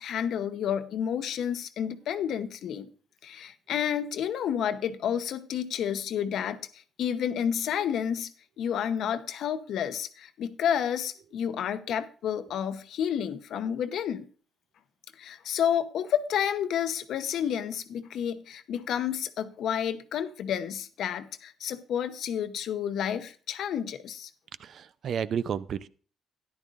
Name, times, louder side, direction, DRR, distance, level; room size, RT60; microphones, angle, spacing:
voice 1, 0.0-2.9 3.2-8.3 8.6-14.3 15.1-24.3, left 9 dB, 75° left, 0.8 m, -30 dB
voice 2, 24.6-25.9, right 8 dB, 60° right, 0.5 m, -31 dB
13.5 x 10.5 x 2.5 m
cardioid pair, 90°, 0 cm